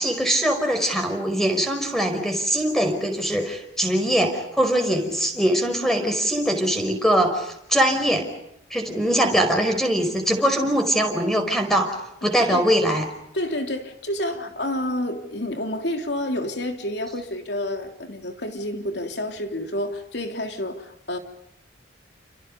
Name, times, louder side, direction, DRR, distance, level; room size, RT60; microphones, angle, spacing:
voice 1, 0.0-8.3 8.7-11.9 12.2-13.1, equal, ahead, 5.2 m, -22 dB
voice 2, 12.4-12.7 13.3-21.2, left 1 dB, 60° left, 3.3 m, -29 dB
30.0 x 29.5 x 5.4 m
head